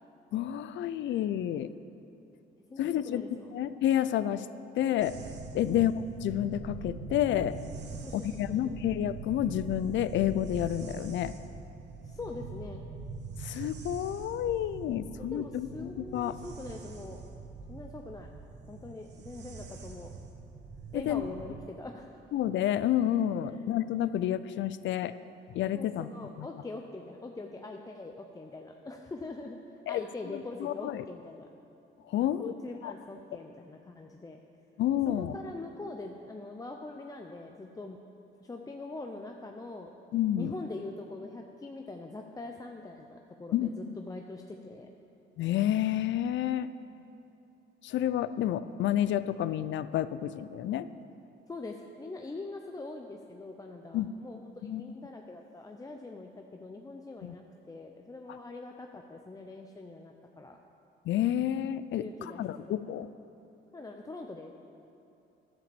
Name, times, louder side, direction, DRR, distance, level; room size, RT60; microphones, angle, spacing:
voice 1, 0.3-1.7 2.8-3.2 3.5-4.5 4.8-5.2 5.5-5.9 6.2-7.6 8.1-11.3 13.4-16.3 20.9-21.2 22.3-25.2 25.5-26.1 26.4-26.5 29.9-30.0 30.3-31.0 32.1-32.5 32.8-32.9 34.8-35.3 40.1-40.5 43.5-43.9 45.4-46.7 47.8-50.9 53.9-54.1 54.6-54.8 57.2-57.3 61.1-63.1, left 11 dB, 70° left, 15 dB, 0.4 m, -30 dB
voice 2, 2.7-3.6 5.6-5.9 8.0-8.3 8.6-8.8 12.0-12.8 15.2-17.2 17.7-18.3 18.7-20.1 20.9-22.1 25.7-29.6 29.9-31.5 32.4-34.4 35.1-38.0 38.4-39.9 40.4-44.9 51.5-60.6 62.0-62.8 63.7-64.5, left 2 dB, 20° left, 3 dB, 0.5 m, -43 dB
sound 1, 5.0-21.6, right 4 dB, 60° right, 1.0 m, -43 dB
11.0 x 5.1 x 6.9 m, 2.8 s
cardioid pair, 90°, 20 cm